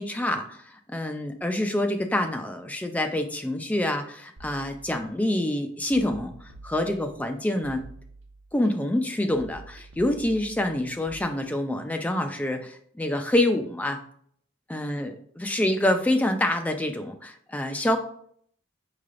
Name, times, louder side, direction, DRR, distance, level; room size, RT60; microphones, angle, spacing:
voice 1, 0.0-6.3 6.6-7.8 8.5-14.0 14.7-18.0, left 1 dB, 10° left, 5 dB, 0.3 m, -26 dB
sound 1, 4.4-5.3 5.9-7.3 7.6-8.7 9.3-11.2, right 2 dB, 80° right, 0.7 m, -47 dB
4.6 x 3.2 x 2.4 m, 0.63 s
head